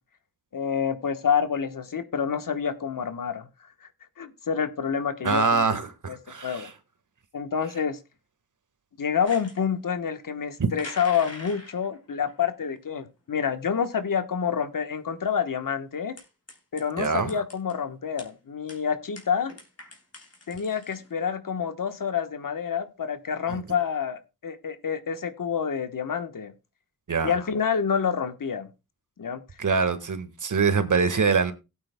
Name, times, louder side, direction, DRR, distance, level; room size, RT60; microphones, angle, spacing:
voice 1, 0.5-3.5 4.2-5.6 6.1-6.2 6.4-6.7 7.3-8.0 9.0-16.1 16.7-19.5 20.5-26.5 27.2-28.7 29.2-29.4, left 7 dB, 60° left, 1.2 m, -28 dB
voice 2, 5.2-6.7 10.6-10.7 17.0-17.3 23.5-23.6 27.1-27.3 29.6-31.5, right 5 dB, 55° right, 1.6 m, -24 dB
sound 1, 9.2-9.7 10.8-12.0 12.3-12.7 13.4-13.5 13.6-13.7 14.8-14.9 16.2-17.7 18.2-18.3 18.7-18.8 19.2-21.1, left 2 dB, 40° left, 3.4 m, -44 dB
17.5 x 8.8 x 2.2 m
cardioid pair, 50°, 36 cm